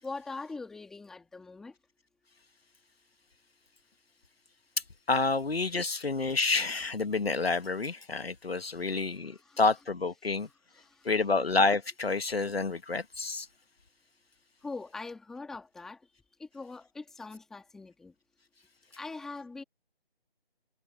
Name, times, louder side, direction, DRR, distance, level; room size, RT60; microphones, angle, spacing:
voice 1, 0.0-1.8 8.7-9.1 9.3-9.6 10.4-11.1 14.6-16.1 16.4-18.1 19.0-19.6, left 3 dB, ahead, 2.2 m, -43 dB
voice 2, 5.1-10.5 11.1-13.5, left 3 dB, 80° left, 1.8 m, -29 dB
figure-of-eight pair, 170°, 30 cm